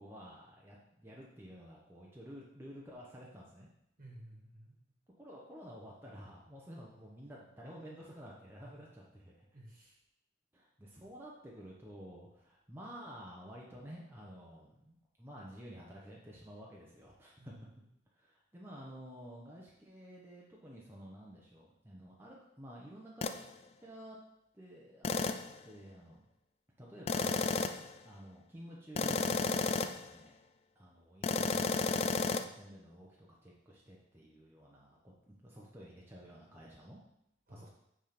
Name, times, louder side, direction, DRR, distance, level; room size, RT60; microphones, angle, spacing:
voice 1, 0.0-3.7 5.2-9.5 10.5-17.7 18.1-23.5 23.8-24.2 24.5-25.2 25.6-26.2 26.8-27.4 28.0-30.3 30.7-37.0 37.5-37.7, equal, 15° right, -4 dB, 0.9 m, -51 dB
voice 2, 4.0-4.8 9.5-10.0 17.4-17.6 37.5-37.7, right 1 dB, 50° right, -1 dB, 1.6 m, -54 dB
sound 1, 23.2-23.4 25.0-25.5 27.1-27.9 29.0-30.1 31.2-32.4, left 4 dB, 35° left, 0.4 m, -32 dB
8.3 x 3.7 x 5.1 m, 0.81 s
head